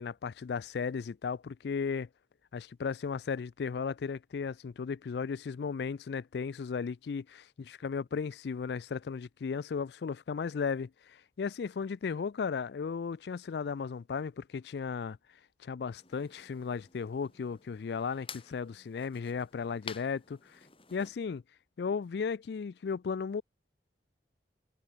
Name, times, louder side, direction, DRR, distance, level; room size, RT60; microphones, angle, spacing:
voice 1, 0.0-2.1 2.5-15.2 15.6-20.6 20.9-21.4 21.8-23.4, left 5 dB, 65° left, 0.4 m, -35 dB
sound 1, 16.0-21.1, left 6 dB, 30° left, 5.5 m, -51 dB
head